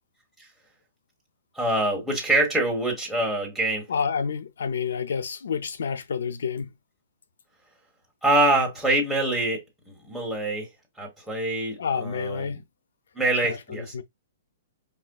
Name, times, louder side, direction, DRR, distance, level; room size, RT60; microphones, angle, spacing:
voice 1, 1.5-3.8 8.2-9.6 9.9-10.7 11.0-12.6 13.1-14.0, right 2 dB, ahead, 1.4 m, -25 dB
voice 2, 3.9-6.7 11.8-12.6 13.4-14.0, left 6 dB, 90° left, 0.5 m, -29 dB
5.0 x 2.4 x 2.3 m
hypercardioid pair, 165°, 0 cm